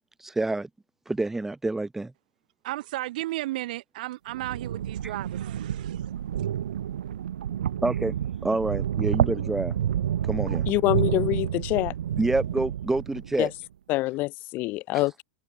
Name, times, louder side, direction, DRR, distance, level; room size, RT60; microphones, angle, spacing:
voice 1, 0.2-0.7 1.1-2.1 5.0-5.1 7.8-8.2 8.4-9.8 10.2-10.7 12.2-13.5, right 2 dB, 5° right, 0.6 m, -27 dB
voice 2, 2.6-6.0, right 17 dB, 60° right, 3.0 m, -34 dB
sound 1, 4.3-13.5, right 10 dB, 75° right, 2.0 m, -29 dB
voice 3, 10.7-11.9 13.4-13.5 13.9-15.2, left 20 dB, 40° left, 0.5 m, -25 dB
hypercardioid pair, 115°, 5 cm